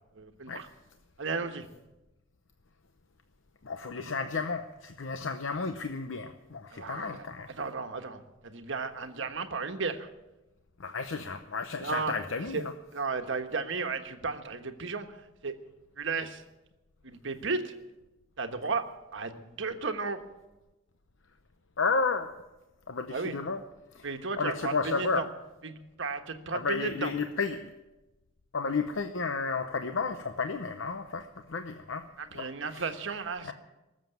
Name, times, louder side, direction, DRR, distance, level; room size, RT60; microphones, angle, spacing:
voice 1, 0.2-0.7 1.2-1.7 6.7-7.2 7.6-10.1 11.8-12.1 12.5-12.6 12.9-15.2 15.4-15.5 16.0-16.4 17.0-17.7 18.4-18.8 19.1-20.2 23.1-23.3 24.0-25.2 25.6-27.1 32.2-33.5, right 4 dB, 65° right, 7 dB, 1.3 m, -34 dB
voice 2, 3.6-7.5 10.8-12.7 21.8-22.3 22.9-23.6 23.9-24.1 24.4-25.3 26.5-27.7 28.5-32.1 32.3-32.9 33.4-33.5, left 4 dB, 70° left, 8 dB, 0.8 m, -32 dB
19.0 x 7.5 x 9.2 m, 1.0 s
head